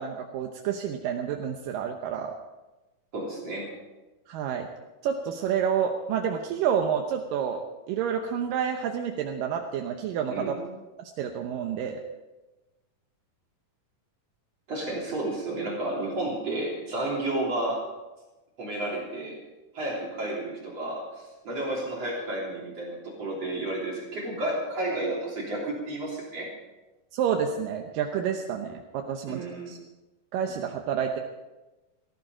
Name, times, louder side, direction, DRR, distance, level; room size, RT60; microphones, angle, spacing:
voice 1, 0.0-2.3 4.3-4.7 5.0-10.6 11.0-12.0 27.1-29.8 30.3-31.2, right 8 dB, 80° right, 3 dB, 2.6 m, -29 dB
voice 2, 3.1-3.7 10.3-10.6 14.7-17.9 18.6-19.4 19.7-26.5 29.3-29.8, right 1 dB, 45° right, -4 dB, 4.2 m, -31 dB
18.5 x 13.5 x 5.0 m, 1.1 s
omnidirectional pair, 3.9 m